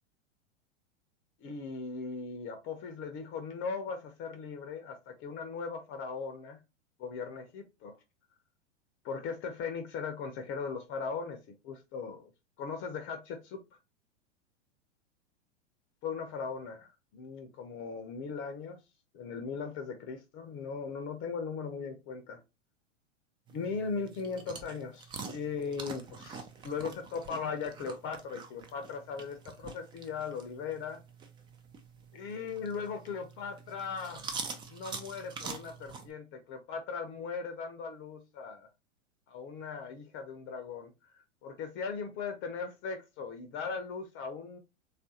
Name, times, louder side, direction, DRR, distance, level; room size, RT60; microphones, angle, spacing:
voice 1, 1.4-6.6 7.0-8.0 9.0-11.4 11.6-12.3 12.6-13.6 16.0-18.8 19.1-22.4 23.5-31.0 32.1-34.4 34.7-38.7 39.3-44.6, left 5 dB, 35° left, 0.6 m, -38 dB
sound 1, 23.5-36.1, right 5 dB, 15° right, 0.3 m, -46 dB
3.2 x 2.4 x 2.7 m
hypercardioid pair, 105°, 36 cm